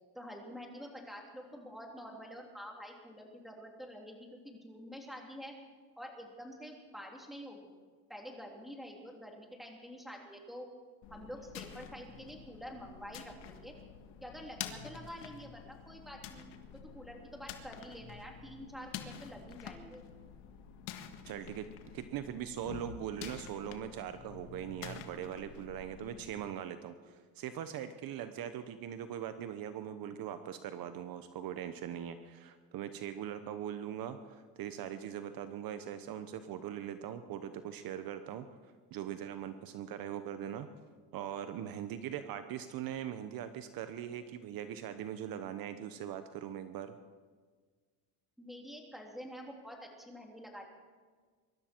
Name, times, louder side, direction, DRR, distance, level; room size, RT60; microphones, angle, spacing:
voice 1, 0.1-5.5 6.0-7.7 8.1-10.7 11.1-13.7 14.2-16.4 16.7-20.0 48.4-50.7, equal, ahead, 0 dB, 3.3 m, -47 dB
sound 1, 11.0-26.3, left 9 dB, 80° left, 1.7 m, -48 dB
voice 2, 21.3-21.7 21.9-40.7 41.1-47.0, right 10 dB, 55° right, 10 dB, 1.0 m, -41 dB
23.5 x 12.5 x 4.6 m, 1.5 s
cardioid pair, 110°, 41 cm